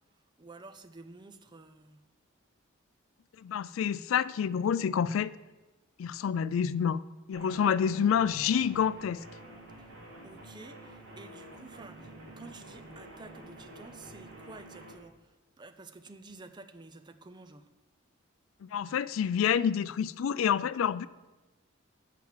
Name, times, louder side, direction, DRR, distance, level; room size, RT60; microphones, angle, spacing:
voice 1, 0.4-2.0 10.2-15.1 15.6-17.6, right 3 dB, 20° right, 0.5 m, -50 dB
voice 2, 3.4-5.3 6.0-7.0 7.3-9.2 18.6-21.1, left 8 dB, 75° left, 0.3 m, -28 dB
sound 1, 7.3-14.9, right 1 dB, 65° right, 2.8 m, -49 dB
7.7 x 5.8 x 7.2 m
head